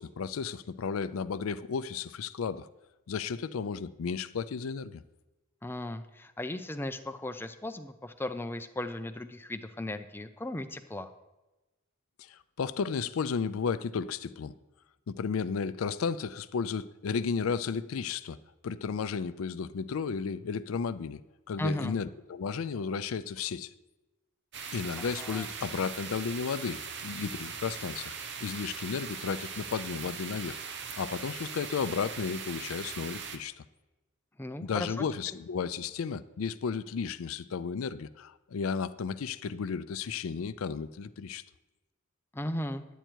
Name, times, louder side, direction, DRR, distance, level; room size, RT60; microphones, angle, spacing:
voice 1, 0.0-2.7 3.1-5.0 12.2-14.5 15.1-18.4 18.6-21.2 21.5-23.7 24.7-30.6 31.0-33.6 34.6-41.4, left 6 dB, 90° left, 0.4 m, -33 dB
voice 2, 5.6-11.1 21.6-22.0 24.9-25.5 34.4-35.0 42.3-42.9, left 1 dB, 10° left, 0.5 m, -36 dB
sound 1, 24.5-33.4, right 6 dB, 55° right, 1.0 m, -40 dB
10.0 x 9.1 x 4.5 m
head